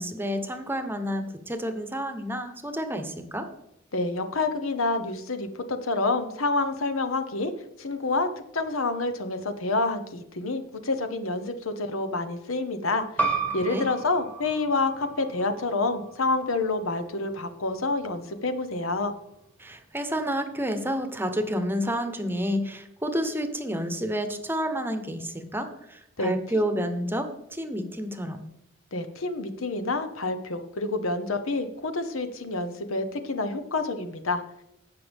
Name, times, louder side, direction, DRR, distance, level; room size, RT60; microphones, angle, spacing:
voice 1, 0.0-3.5 13.6-13.8 19.6-28.4, equal, 10° right, 8 dB, 0.9 m, -30 dB
voice 2, 3.9-7.5 7.8-8.3 8.5-19.1 26.2-26.3 28.9-34.4, left 3 dB, 85° left, 9 dB, 1.0 m, -28 dB
sound 1, 13.2-18.3, right 4 dB, 10° left, 1.3 m, -34 dB
17.0 x 5.8 x 3.5 m, 0.82 s
head